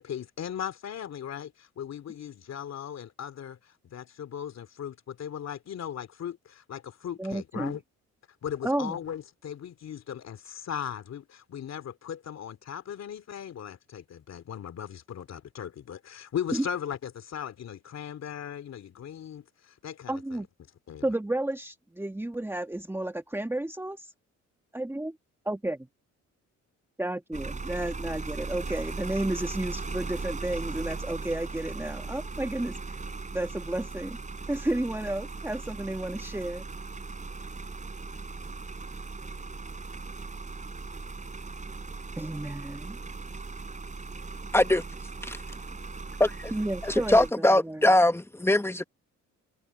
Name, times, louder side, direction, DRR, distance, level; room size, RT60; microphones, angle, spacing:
voice 1, 0.0-7.8 8.4-20.4 20.9-21.1, left 9 dB, 60° left, 2.9 m, -38 dB
voice 2, 7.2-7.8 8.6-9.0 16.5-16.7 20.1-20.5 21.0-24.1 24.7-25.2 25.5-25.9 27.0-33.0 33.3-34.2 34.5-36.7 42.2-43.0 46.5-47.8, right 1 dB, 10° right, 2.0 m, -32 dB
sound 1, 27.3-47.3, right 3 dB, 25° right, 4.5 m, -38 dB
voice 3, 44.5-44.8 45.2-45.4 46.2-46.5 46.8-48.8, left 1 dB, 10° left, 1.2 m, -22 dB
cardioid pair, 90°, 30 cm